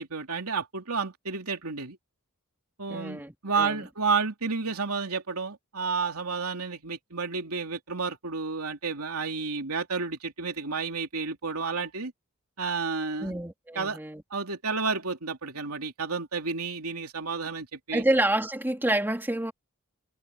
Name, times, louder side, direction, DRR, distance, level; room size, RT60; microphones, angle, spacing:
voice 1, 0.0-2.0 2.8-12.1 12.6-13.4 13.7-14.0 14.3-18.0, right 4 dB, 75° right, 3.2 m, -31 dB
voice 2, 2.9-3.9 13.2-14.2 17.9-19.5, right 1 dB, 10° right, 2.8 m, -28 dB
head